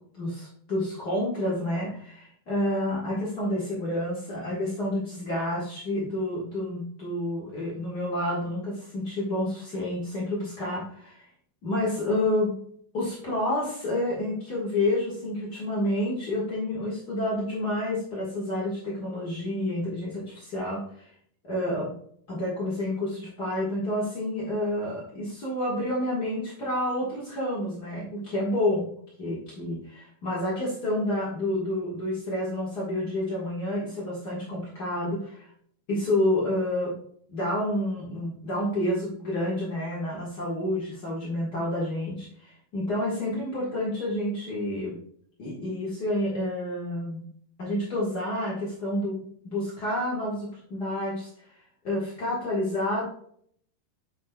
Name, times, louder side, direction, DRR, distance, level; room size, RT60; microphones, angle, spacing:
voice 1, 0.1-11.2 11.6-12.5 12.9-21.1 21.4-21.9 22.3-28.9 29.2-35.5 35.9-36.9 37.3-45.0 45.4-47.3 47.6-51.3 51.8-53.0, left 1 dB, 65° left, -7 dB, 0.9 m, -29 dB
7.5 x 6.1 x 2.3 m, 0.63 s
omnidirectional pair, 4.6 m